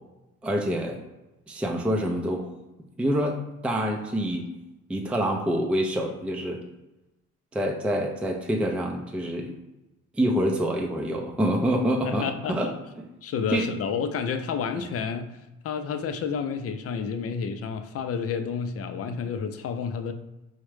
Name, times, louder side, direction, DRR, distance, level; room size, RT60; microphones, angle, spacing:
voice 1, 0.4-1.0 1.5-2.5 3.0-4.5 4.9-6.6 7.5-9.5 10.1-12.7 13.5-13.7 14.8-14.9, equal, 5° right, 1 dB, 0.4 m, -26 dB
voice 2, 12.0-12.8 13.2-15.4 15.6-20.1, left 6 dB, 50° left, 8 dB, 0.5 m, -30 dB
4.7 x 2.1 x 3.1 m, 0.99 s
cardioid pair, 90°, 30 cm